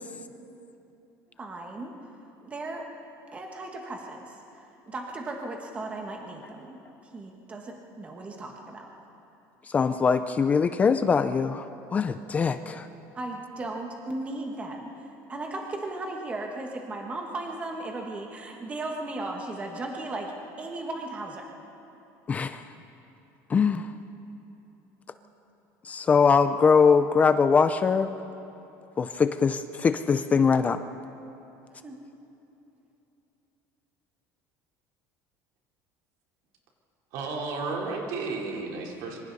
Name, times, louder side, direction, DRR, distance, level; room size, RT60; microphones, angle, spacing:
voice 1, 1.4-1.9 2.4-2.8 3.3-8.9 13.1-21.5 31.8-32.0, right 2 dB, 20° right, 1 dB, 1.5 m, -36 dB
voice 2, 9.7-11.6 11.9-12.9 22.3-22.6 23.5-23.9 25.8-28.1 29.0-30.8, left 5 dB, 20° left, 11 dB, 0.5 m, -22 dB
voice 3, 37.1-39.2, right 3 dB, 65° right, -1 dB, 3.9 m, -33 dB
26.0 x 24.5 x 4.1 m, 2.9 s
cardioid pair, 170°, 7 cm